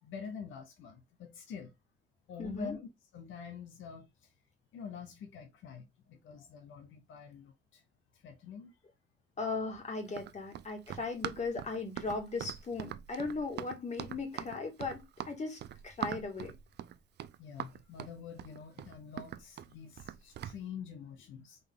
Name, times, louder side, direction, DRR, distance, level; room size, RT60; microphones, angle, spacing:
voice 1, 0.0-1.7 2.3-2.9 3.1-4.3 4.7-7.8 8.1-8.7 17.4-21.6, left 6 dB, 80° left, 0.8 m, -46 dB
voice 2, 2.4-2.8 9.4-16.5, left 3 dB, 35° left, 1.9 m, -38 dB
Run, 10.1-20.6, right 11 dB, 60° right, 0.4 m, -42 dB
4.0 x 3.2 x 3.7 m
cardioid pair, 90°, 20 cm